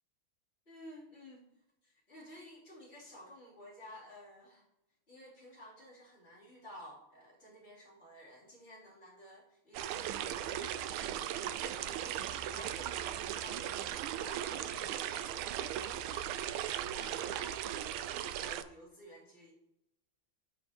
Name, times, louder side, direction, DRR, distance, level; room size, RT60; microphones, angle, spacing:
voice 1, 0.7-1.5 1.8-4.6 5.1-13.0 13.4-19.5, equal, 30° left, -6 dB, 3.2 m, -53 dB
sound 1, 9.7-18.6, right 11 dB, 85° right, 1.4 m, -37 dB
16.0 x 5.7 x 2.8 m, 0.87 s
omnidirectional pair, 2.2 m